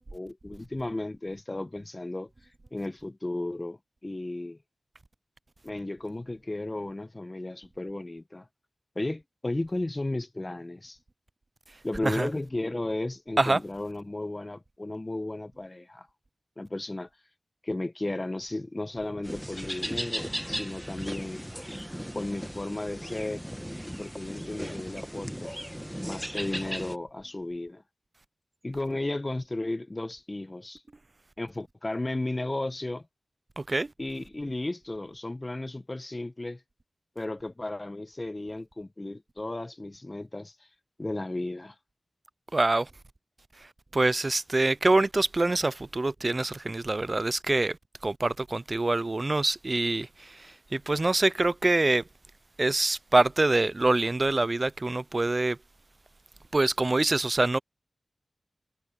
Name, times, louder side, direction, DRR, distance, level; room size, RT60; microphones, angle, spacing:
voice 1, 0.1-2.3 2.7-4.6 5.6-8.5 8.9-11.0 11.8-16.1 16.6-17.1 17.6-21.5 22.1-23.4 24.0-25.5 26.0-27.8 28.6-30.8 31.4-33.0 34.0-36.6 37.1-40.5 41.0-41.7, left 2 dB, 35° left, 1.3 m, -34 dB
sound 1, 19.2-27.0, equal, 5° right, 1.4 m, -37 dB
voice 2, 33.6-33.9 42.5-42.9 43.9-47.8 48.0-52.0 52.6-55.6 56.5-57.6, right 2 dB, 45° right, 0.4 m, -25 dB
cardioid pair, 40°, 0 cm